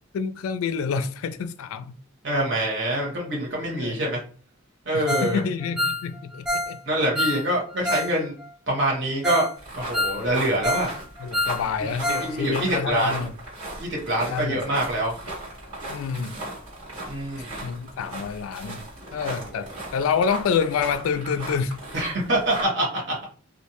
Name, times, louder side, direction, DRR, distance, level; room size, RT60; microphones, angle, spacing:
voice 1, 0.1-1.9 3.7-4.0 4.9-6.8 10.1-10.4 11.2-13.3 14.3-14.6 15.9-16.4 17.6-18.8 19.1-21.8, left 6 dB, 80° left, 0.3 m, -28 dB
voice 2, 2.2-4.2 4.8-5.4 6.9-8.3 8.7-9.5 9.7-10.9 12.2-13.2 13.8-15.1 17.0-17.7 19.5-19.6 21.9-23.2, right 1 dB, 55° right, 1.2 m, -25 dB
Ringtone, 5.1-5.4 5.6-8.1 8.4-8.5 8.9-9.0 9.2-9.5 9.8-10.9 11.2-12.3 12.6-12.7 13.1-13.2, left 1 dB, 5° right, 0.3 m, -27 dB
sound 1, 9.6-22.7, right 1 dB, 90° right, 1.4 m, -37 dB
2.6 x 2.1 x 2.8 m
head